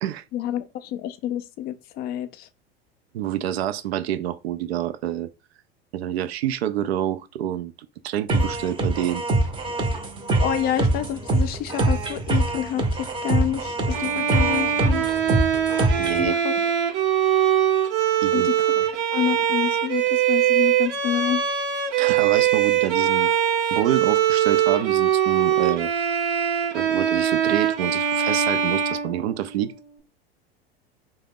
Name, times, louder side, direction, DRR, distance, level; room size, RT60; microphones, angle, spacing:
voice 1, 0.3-2.5 10.4-15.2 16.2-16.5 18.3-18.8 19.1-21.6, left 11 dB, 30° left, 0.4 m, -28 dB
voice 2, 3.1-5.3 5.9-7.7 8.0-9.2 15.9-16.4 18.2-18.5 22.0-23.3 23.7-25.9 26.7-29.7, right 11 dB, 75° right, 0.5 m, -27 dB
sound 1, 8.3-16.3, right 2 dB, 15° right, 0.6 m, -24 dB
Bowed string instrument, 13.9-29.8, right 9 dB, 60° right, 0.9 m, -22 dB
2.7 x 2.1 x 3.5 m
hypercardioid pair, 90°, 31 cm